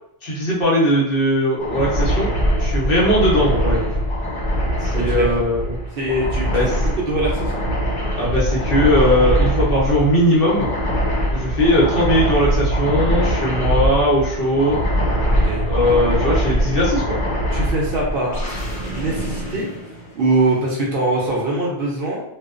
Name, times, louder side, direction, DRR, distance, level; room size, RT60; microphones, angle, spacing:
voice 1, 0.2-2.3 2.6-3.9 4.8-5.8 6.5-6.7 8.1-10.7 11.3-14.8 15.7-17.2, equal, 55° left, -6 dB, 1.0 m, -19 dB
sound 1, 1.6-20.4, equal, 80° left, 1.2 m, -22 dB
voice 2, 4.9-5.3 5.9-6.5 7.0-7.6 15.3-15.6 17.5-18.4 18.9-19.7 20.1-22.2, right 2 dB, 60° right, -3 dB, 0.7 m, -22 dB
2.4 x 2.1 x 2.4 m, 0.77 s
omnidirectional pair, 1.2 m